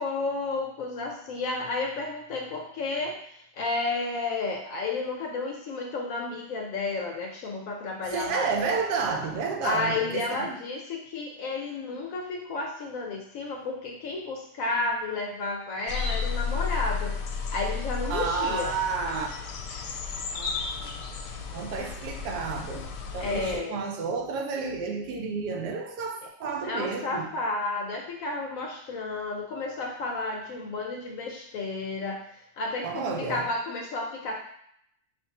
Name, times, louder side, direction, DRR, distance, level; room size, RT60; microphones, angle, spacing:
voice 1, 0.0-8.5 9.6-17.2 17.5-18.7 23.2-23.8 26.6-34.4, left 3 dB, 70° left, 0 dB, 0.8 m, -32 dB
voice 2, 8.1-10.5 18.1-19.6 20.3-20.9 21.5-27.3 32.8-33.5, right 5 dB, 80° right, 3 dB, 1.1 m, -31 dB
sound 1, 15.9-23.6, left 5 dB, 85° left, 1.2 m, -33 dB
5.1 x 2.5 x 2.7 m, 0.72 s
omnidirectional pair, 1.8 m